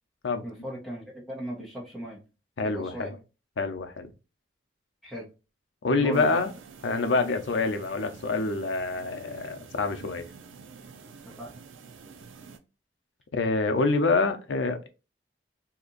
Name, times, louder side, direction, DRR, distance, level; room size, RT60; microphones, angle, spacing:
voice 1, 0.4-2.2 2.6-3.1 5.0-5.3 6.0-6.4 11.3-11.5, equal, ahead, 0.9 m, -37 dB
voice 2, 2.6-3.2 3.6-4.1 5.8-6.5 6.8-10.3 13.3-14.9, left 3 dB, 75° left, 0.6 m, -26 dB
sound 1, 6.1-12.6, right 5 dB, 90° right, 0.5 m, -48 dB
2.8 x 2.5 x 3.8 m
head